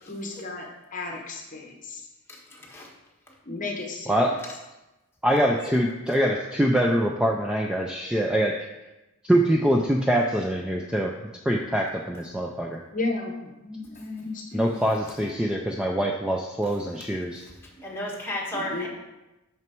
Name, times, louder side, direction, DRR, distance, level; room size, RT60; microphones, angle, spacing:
voice 1, 0.0-2.0 3.5-4.4 12.9-14.8 18.5-18.9, left 2 dB, 40° left, 1 dB, 0.9 m, -34 dB
voice 2, 2.3-2.9 5.3-5.7 16.6-16.7 17.8-18.9, left 1 dB, 10° left, -3 dB, 1.4 m, -34 dB
voice 3, 5.2-8.5 9.3-11.1 11.5-12.8 14.5-17.4, equal, 5° right, 0 dB, 0.4 m, -24 dB
6.3 x 6.1 x 4.5 m, 1.0 s
head